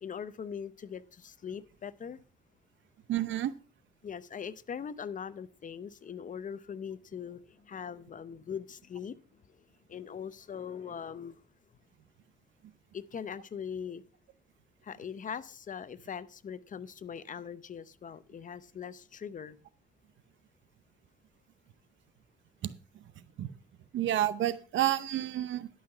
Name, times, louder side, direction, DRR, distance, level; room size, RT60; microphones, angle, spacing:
voice 1, 0.0-2.2 4.0-9.6 9.9-11.4 12.9-14.0 14.8-19.6, left 7 dB, 40° left, 16 dB, 0.7 m, -41 dB
voice 2, 3.1-3.5 22.6-22.7 23.4-23.5 23.9-25.7, right 13 dB, 70° right, 16 dB, 0.7 m, -29 dB
11.5 x 5.7 x 5.6 m, 0.40 s
cardioid pair, 90°, 20 cm